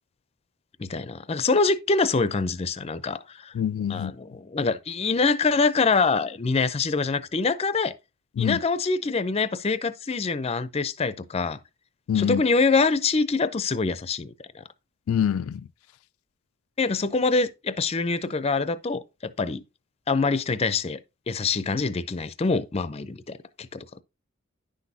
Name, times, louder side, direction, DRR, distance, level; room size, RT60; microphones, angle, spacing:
voice 1, 0.8-3.5 3.9-7.9 8.4-11.6 12.1-14.3 16.8-19.6 20.1-21.0 21.3-23.8, left 4 dB, 30° left, 0.5 m, -25 dB
voice 2, 3.5-4.1 8.4-8.6 12.1-12.4 15.1-15.6, left 9 dB, 85° left, 0.3 m, -25 dB
10.0 x 6.1 x 2.7 m
head